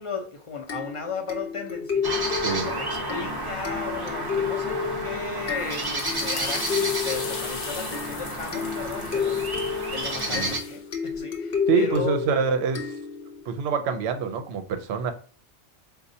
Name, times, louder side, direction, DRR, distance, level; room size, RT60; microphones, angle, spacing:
voice 1, 0.0-2.0 2.6-9.4 9.9-12.2, left 4 dB, 40° left, 0.5 m, -35 dB
sound 1, 0.7-13.5, left 6 dB, 60° left, 0.8 m, -31 dB
sound 2, 2.0-10.6, right 2 dB, 30° right, 0.4 m, -31 dB
voice 2, 2.4-2.7 10.3-10.5 11.7-13.0 13.5-15.1, right 6 dB, 70° right, 0.8 m, -26 dB
sound 3, 5.4-10.8, left 6 dB, 85° left, 1.0 m, -38 dB
4.0 x 2.3 x 2.6 m
omnidirectional pair, 1.2 m